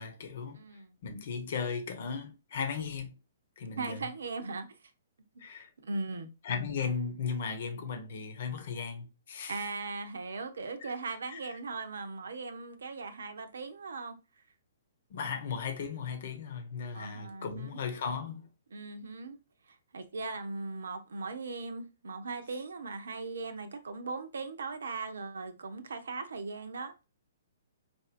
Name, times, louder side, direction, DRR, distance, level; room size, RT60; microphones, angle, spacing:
voice 1, 0.0-0.6 1.0-3.1 3.6-4.0 5.4-5.7 6.4-9.6 10.8-10.9 11.3-11.4 15.1-18.5, left 6 dB, 60° left, 1.0 m, -36 dB
voice 2, 0.5-1.0 3.8-4.7 5.8-6.3 9.5-14.2 16.9-17.8 18.7-19.4 19.7-26.9, right 3 dB, 80° right, 0.7 m, -39 dB
4.6 x 2.6 x 2.5 m
hypercardioid pair, 130°, 0 cm